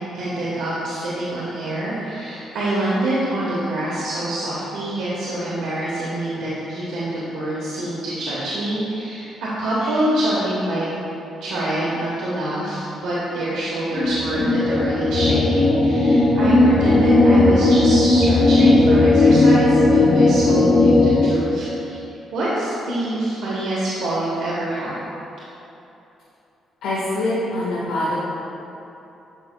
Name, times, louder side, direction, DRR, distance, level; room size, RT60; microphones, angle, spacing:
voice 1, 0.0-10.9 11.4-22.0 22.3-24.9, right 1 dB, 80° right, -8 dB, 1.1 m, -25 dB
sound 1, 13.9-21.2, left 2 dB, 50° left, 0.9 m, -16 dB
voice 2, 26.8-28.1, left 1 dB, 85° left, -10 dB, 1.4 m, -24 dB
10.5 x 5.4 x 2.2 m, 3.0 s
cardioid pair, 90°, 0 cm